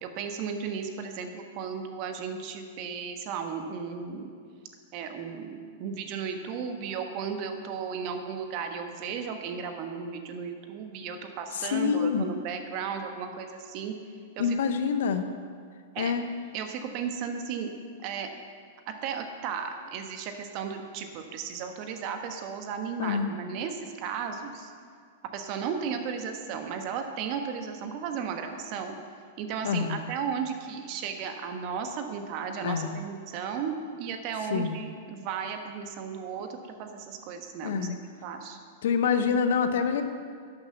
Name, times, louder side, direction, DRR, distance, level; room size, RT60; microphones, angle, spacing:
voice 1, 0.0-4.3 4.9-13.9 14.4-14.6 15.9-16.1 16.5-17.7 18.0-18.3 18.9-24.7 25.3-29.0 29.4-37.8 38.2-38.6, right 6 dB, 45° right, 6 dB, 1.2 m, -35 dB
voice 2, 11.5-12.3 14.4-15.3 16.0-16.3 23.0-23.3 29.6-30.0 32.6-33.0 34.5-34.8 37.6-38.0 38.8-40.0, left 6 dB, 60° left, 9 dB, 0.8 m, -26 dB
11.5 x 6.9 x 6.7 m, 2.1 s
figure-of-eight pair, 100°, 0 cm